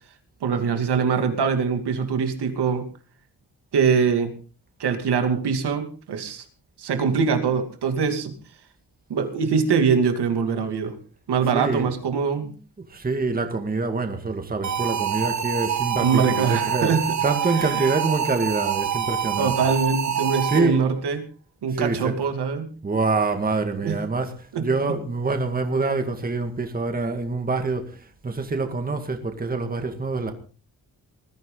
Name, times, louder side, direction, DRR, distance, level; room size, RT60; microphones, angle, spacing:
voice 1, 0.4-2.9 3.7-4.3 4.8-6.4 6.8-8.3 9.1-11.0 11.3-12.5 16.0-17.0 17.6-17.8 19.4-21.2 21.6-22.7 23.8-24.0 24.5-24.7, right 6 dB, 90° right, 2.6 m, -23 dB
voice 2, 11.5-11.9 12.9-16.9 17.2-19.5 20.5-20.8 21.7-22.1 22.8-30.3, right 3 dB, 20° right, 2.0 m, -25 dB
sound 1, 14.6-20.9, right 8 dB, 45° right, 1.0 m, -26 dB
20.5 x 14.5 x 3.9 m
wide cardioid pair, 175°, 39 cm